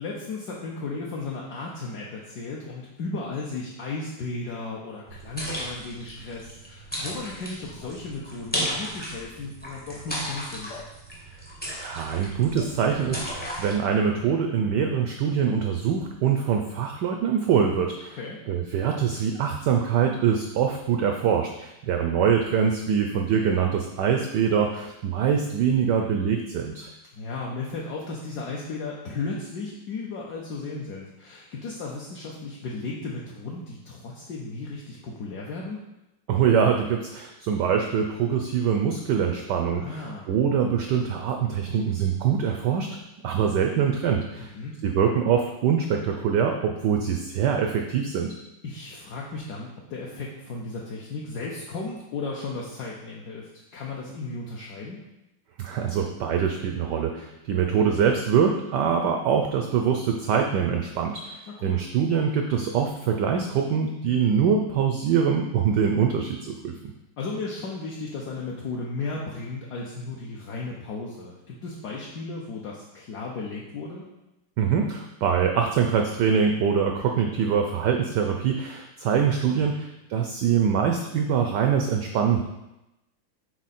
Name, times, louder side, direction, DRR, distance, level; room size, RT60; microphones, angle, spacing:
voice 1, 0.0-10.8 18.1-18.4 25.7-26.2 27.1-35.8 39.7-40.3 44.4-44.8 48.6-55.0 61.5-61.8 67.2-74.1 79.6-79.8, left 3 dB, 65° left, -3 dB, 1.1 m, -35 dB
sound 1, 5.1-13.7, equal, 10° left, 0.6 m, -35 dB
voice 2, 11.7-18.2 18.5-26.9 36.3-42.9 43.2-44.5 44.8-48.3 55.6-66.7 74.6-82.4, right 7 dB, 80° right, 3 dB, 0.9 m, -24 dB
6.3 x 4.0 x 4.2 m, 0.94 s
omnidirectional pair, 2.4 m